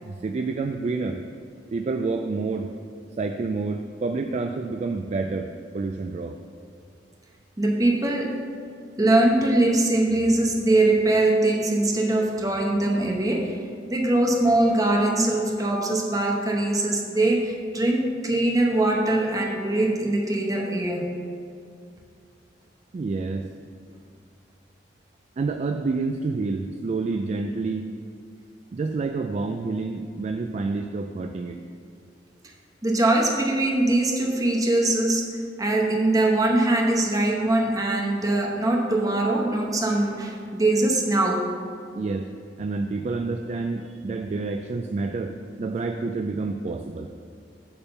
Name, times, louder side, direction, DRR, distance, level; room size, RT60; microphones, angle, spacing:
voice 1, 0.0-1.2 1.7-2.7 3.2-5.5 5.7-6.4 22.9-23.5 25.4-27.9 28.7-31.6 41.9-42.3 42.6-47.1, right 3 dB, 40° right, 6 dB, 0.3 m, -28 dB
voice 2, 7.6-8.4 9.0-13.6 13.9-21.1 32.4-32.5 32.8-41.5, right 2 dB, 20° right, 1 dB, 0.9 m, -22 dB
8.7 x 3.6 x 6.8 m, 2.3 s
head